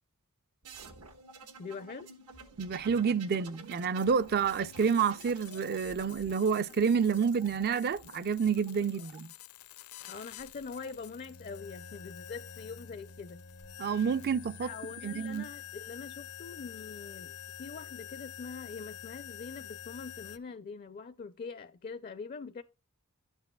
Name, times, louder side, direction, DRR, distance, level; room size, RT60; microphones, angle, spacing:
sound 1, 0.6-9.2 10.3-10.9, right 4 dB, 80° right, 1.3 m, -51 dB
voice 1, 1.6-2.1 10.1-13.4 14.6-22.6, left 5 dB, 40° left, 0.4 m, -43 dB
voice 2, 2.6-9.3 13.8-14.7 15.0-15.4, right 6 dB, 45° right, 0.4 m, -29 dB
sound 2, 4.1-20.4, left 9 dB, 80° left, 0.7 m, -48 dB
11.5 x 8.1 x 2.2 m
head